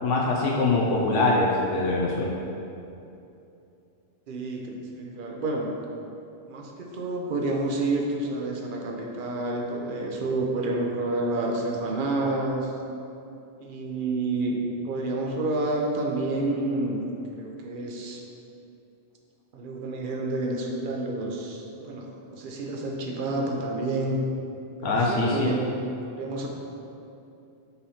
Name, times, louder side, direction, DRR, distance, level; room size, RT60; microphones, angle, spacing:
voice 1, 0.0-2.3 24.8-25.5, left 3 dB, 85° left, -3 dB, 1.1 m, -23 dB
voice 2, 4.3-5.7 6.5-12.7 13.6-14.6 14.8-17.0 17.4-18.2 19.5-22.1 22.3-24.2 24.8-25.8 26.0-26.5, right 2 dB, 50° right, 0 dB, 0.9 m, -29 dB
5.5 x 4.2 x 5.7 m, 2.7 s
omnidirectional pair, 1.2 m